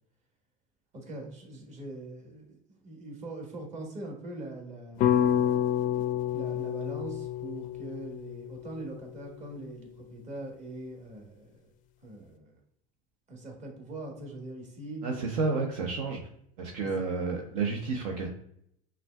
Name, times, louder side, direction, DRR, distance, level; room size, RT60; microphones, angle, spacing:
voice 1, 0.9-5.6 5.9-6.1 6.3-11.7 12.0-12.5 13.3-15.0, right 2 dB, 40° right, 1 dB, 1.4 m, -42 dB
sound 1, 5.0-9.3, left 10 dB, 45° left, 0.4 m, -29 dB
voice 2, 15.0-16.2 16.6-18.3, right 4 dB, 70° right, 1 dB, 0.7 m, -30 dB
5.6 x 2.4 x 2.2 m, 0.70 s
hypercardioid pair, 90°, 19 cm